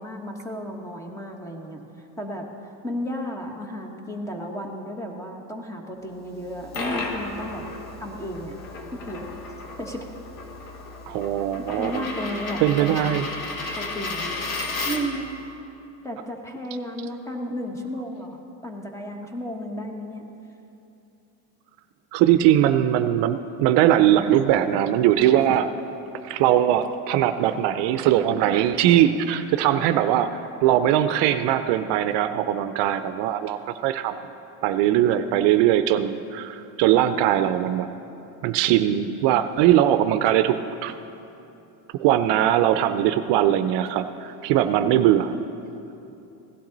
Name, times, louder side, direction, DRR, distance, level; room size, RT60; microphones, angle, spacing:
voice 1, 0.0-1.8 2.2-2.5 2.8-7.7 8.0-8.6 8.9-9.2 9.8-10.1 11.6-13.2 13.8-14.4 14.9-15.2 16.0-20.2 44.6-45.1, equal, 5° left, 2 dB, 1.2 m, -33 dB
Coin (dropping), 6.4-15.3, left 3 dB, 45° left, 1.6 m, -33 dB
voice 2, 11.1-12.0 12.6-13.3 22.1-25.7 26.2-34.2 34.6-37.9 38.4-40.9 41.9-45.4, right 11 dB, 65° right, 10 dB, 0.6 m, -21 dB
17.0 x 12.0 x 4.0 m, 2.9 s
cardioid pair, 125°, 45 cm